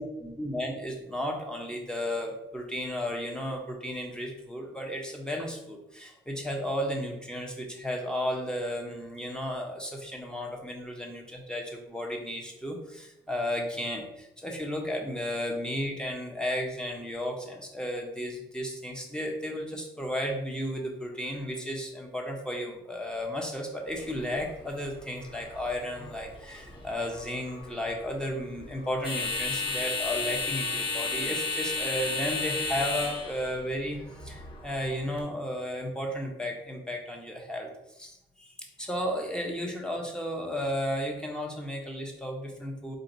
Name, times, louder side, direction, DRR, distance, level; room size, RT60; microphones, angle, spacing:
voice 1, 0.0-34.0 34.2-37.7 37.9-43.0, equal, 5° left, 0 dB, 1.0 m, -34 dB
sound 1, 23.9-35.2, left 3 dB, 25° left, 1.3 m, -34 dB
4.5 x 2.7 x 3.9 m, 0.87 s
cardioid pair, 90°, 20 cm